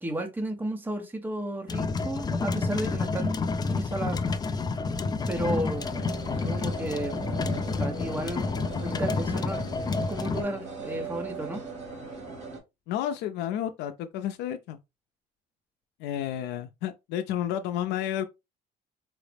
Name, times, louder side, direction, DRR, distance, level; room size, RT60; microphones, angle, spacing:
voice 1, 0.0-3.4 3.7-4.2 5.3-5.9 6.4-7.2 7.8-8.5 8.8-9.6 10.1-11.6, right 1 dB, 10° right, 0.8 m, -33 dB
sound 1, 1.7-10.4, left 4 dB, 25° left, 0.4 m, -29 dB
sound 2, 5.4-12.6, right 5 dB, 45° right, 1.8 m, -39 dB
Brass instrument, 6.6-12.5, left 6 dB, 50° left, 0.8 m, -50 dB
voice 2, 12.9-14.8 16.0-18.3, left 11 dB, 90° left, 0.4 m, -31 dB
4.7 x 2.0 x 3.3 m
cardioid pair, 110°, 17 cm